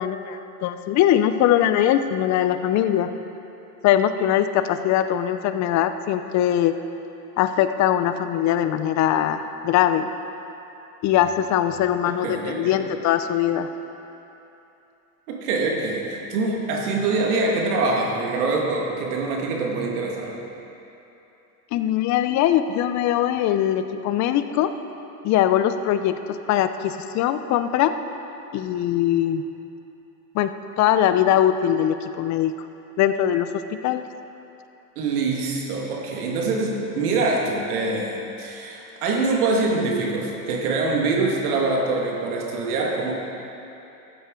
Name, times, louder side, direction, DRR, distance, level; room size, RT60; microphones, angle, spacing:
voice 1, 0.0-3.1 3.8-6.8 7.4-10.1 11.0-13.7 21.7-24.7 25.2-27.9 28.5-29.4 30.3-30.5 30.8-32.5 33.0-34.0, left 11 dB, 40° left, 10 dB, 0.6 m, -21 dB
voice 2, 12.1-12.9 15.3-20.3 35.0-43.1, right 3 dB, 80° right, -1 dB, 2.0 m, -24 dB
13.5 x 8.1 x 3.8 m, 2.9 s
supercardioid pair, 105°, 45 cm